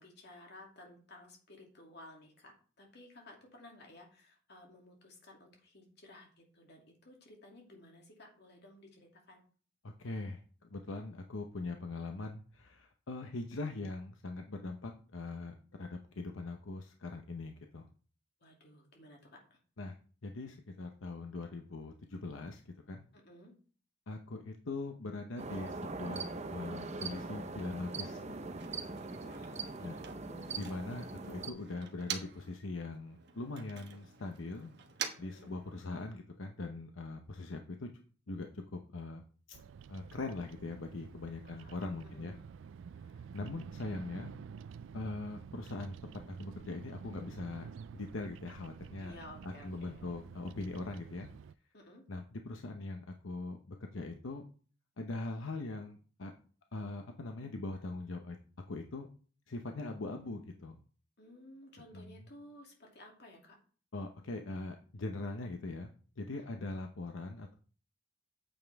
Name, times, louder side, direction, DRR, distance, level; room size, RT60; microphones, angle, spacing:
voice 1, 0.0-9.4 18.4-19.6 23.1-23.5 29.1-30.6 35.2-35.6 41.4-41.8 42.0-42.4 49.0-50.1 51.7-52.0 61.2-63.6 66.4-66.7, left 1 dB, 60° left, 0 dB, 2.5 m, -56 dB
voice 2, 9.8-17.9 19.8-19.9 20.2-22.6 22.9-23.1 24.1-28.6 29.8-30.0 30.6-34.7 35.2-37.9 38.3-39.2 39.5-39.6 39.9-42.4 43.3-44.3 44.9-46.0 46.3-47.7 47.9-49.1 49.4-51.3 52.1-54.4 55.0-56.3 56.7-58.4 58.7-59.1 59.5-60.8 61.9-62.2 63.9-67.6, left 2 dB, 85° left, 4 dB, 0.8 m, -41 dB
sound 1, 25.4-31.5, right 3 dB, 35° right, 0.8 m, -41 dB
Motor vehicle (road), 28.1-32.6 32.9-36.2, right 7 dB, 60° right, 1.2 m, -47 dB
Bird vocalization bird call bird song, 39.5-51.5, right 6 dB, 75° right, 0.3 m, -50 dB
8.9 x 7.2 x 3.5 m, 0.40 s
head